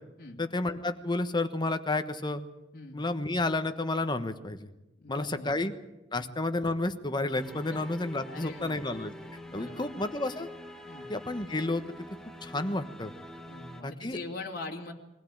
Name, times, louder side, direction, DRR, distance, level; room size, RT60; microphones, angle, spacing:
voice 1, 0.4-2.4 2.9-4.7 5.1-5.7 6.1-9.1 9.5-10.5 11.1-11.8 12.4-13.1 13.8-14.2, left 2 dB, 25° left, 9 dB, 1.2 m, -31 dB
voice 2, 5.0-5.6 6.1-6.3 7.7-7.8 8.3-8.8 9.5-9.9 10.8-11.1 13.5-14.9, left 3 dB, 55° left, 0 dB, 2.7 m, -42 dB
sound 1, 7.3-13.8, left 1 dB, 5° left, 1.6 m, -46 dB
22.5 x 16.5 x 8.9 m, 1.0 s
head